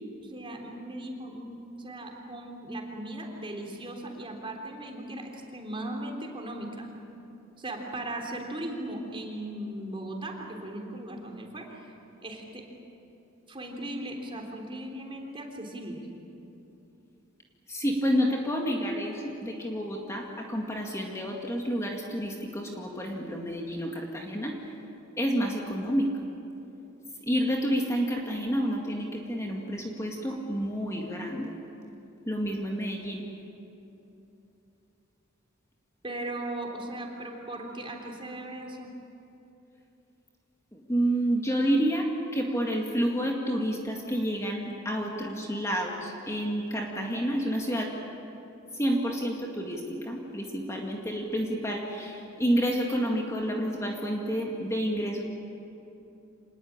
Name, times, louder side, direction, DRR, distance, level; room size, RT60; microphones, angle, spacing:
voice 1, 0.2-6.9 7.6-11.9 12.2-12.6 13.5-16.0 36.0-38.9, right 1 dB, 25° right, 1 dB, 3.6 m, -38 dB
voice 2, 17.7-24.7 25.2-26.1 27.2-31.5 32.3-33.2 40.7-47.9 48.7-55.2, equal, 15° left, 0 dB, 2.1 m, -29 dB
26.5 x 20.0 x 8.8 m, 2.9 s
head